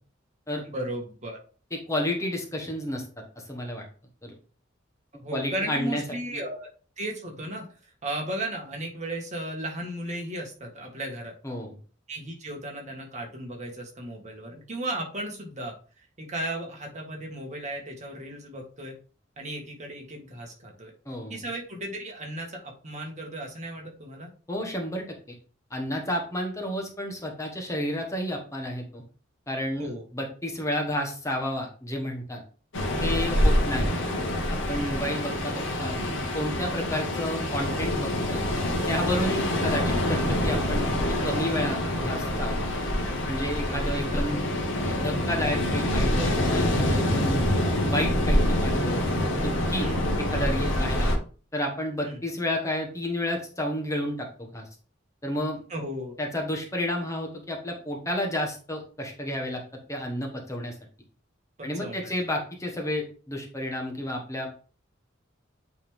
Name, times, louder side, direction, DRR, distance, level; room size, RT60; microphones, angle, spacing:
voice 1, 0.6-1.4 5.1-6.7 7.0-7.7 8.0-11.3 12.1-15.7 16.2-19.0 19.4-20.9 21.3-24.3 29.8-30.1 33.3-33.5 34.8-35.0 39.5-39.7 43.6-44.2 49.8-50.0 52.0-52.2 55.7-56.1 61.6-62.1, right 1 dB, 40° right, 1 dB, 1.8 m, -35 dB
voice 2, 1.9-3.0 3.4-3.8 4.2-4.3 5.3-6.0 6.3-6.4 11.4-11.7 21.0-21.4 24.5-25.4 25.7-29.0 29.5-29.9 30.1-32.4 33.0-33.9 34.5-36.0 36.3-38.5 38.9-40.9 41.2-42.6 43.3-44.4 44.7-47.5 47.8-49.0 49.3-49.9 50.3-51.1 51.5-54.6 55.2-55.6 56.2-59.6 59.9-60.7 61.6-64.5, left 1 dB, 15° left, 1 dB, 1.2 m, -31 dB
Ocean, 32.7-51.2, left 1 dB, 70° left, 1.5 m, -26 dB
8.9 x 3.6 x 3.5 m, 0.39 s
head